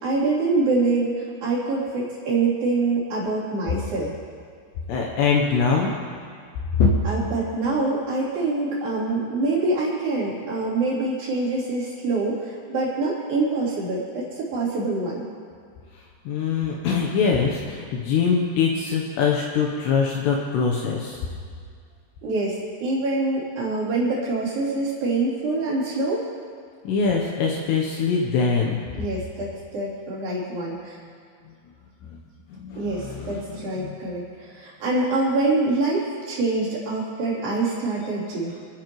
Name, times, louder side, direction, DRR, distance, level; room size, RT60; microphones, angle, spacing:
voice 1, 0.0-4.1 7.0-15.3 22.2-26.3 28.9-31.0 32.7-38.6, right 3 dB, 50° right, -8 dB, 4.7 m, -25 dB
voice 2, 4.9-5.9 6.7-6.9 16.3-21.2 26.8-28.8 32.1-32.2 32.5-34.0, left 5 dB, 75° left, -1 dB, 2.7 m, -23 dB
26.5 x 9.9 x 3.1 m, 2.1 s
omnidirectional pair, 5.7 m